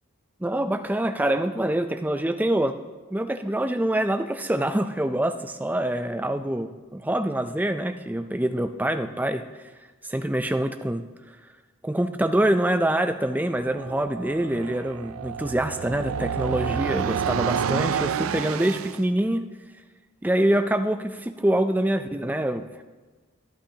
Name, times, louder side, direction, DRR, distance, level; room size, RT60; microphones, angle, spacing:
voice 1, 0.4-2.8 3.1-9.4 10.0-11.0 11.8-19.4 20.2-22.8, right 1 dB, 10° right, 8 dB, 0.4 m, -25 dB
sound 1, 13.6-19.0, right 7 dB, 85° right, 0.4 m, -29 dB
24.5 x 8.8 x 2.8 m, 1.3 s
head